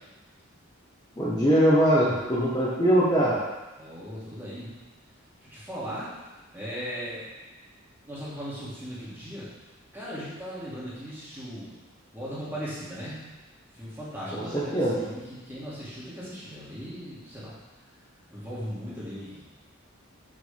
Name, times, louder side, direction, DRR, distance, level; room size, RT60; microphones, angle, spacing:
voice 1, 1.2-3.4 14.3-15.0, equal, 20° left, -8 dB, 1.1 m, -22 dB
voice 2, 3.8-4.7 5.5-6.1 6.5-7.3 8.1-9.5 9.9-11.7 12.1-13.2 13.7-17.6 18.3-19.4, equal, 10° right, -9 dB, 2.5 m, -38 dB
8.0 x 6.3 x 3.5 m, 1.1 s
head